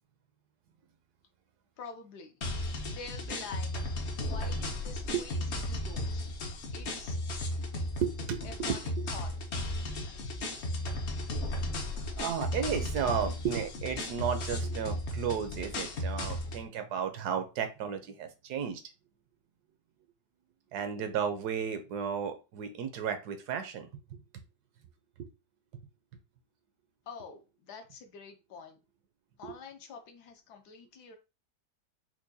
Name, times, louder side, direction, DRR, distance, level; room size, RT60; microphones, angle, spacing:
voice 1, 1.8-2.3 2.9-3.7 4.2-6.3 6.7-7.2 8.4-9.3 27.1-28.8 29.4-31.2, left 5 dB, 70° left, 5 dB, 1.2 m, -47 dB
sound 1, 2.4-16.6, left 1 dB, 55° left, 0.8 m, -35 dB
voice 2, 8.0-8.8 9.8-9.9 12.2-18.8 20.7-23.9 29.4-29.5, right 7 dB, 75° right, 7 dB, 1.1 m, -33 dB
4.5 x 2.2 x 2.6 m, 0.29 s
omnidirectional pair, 1.8 m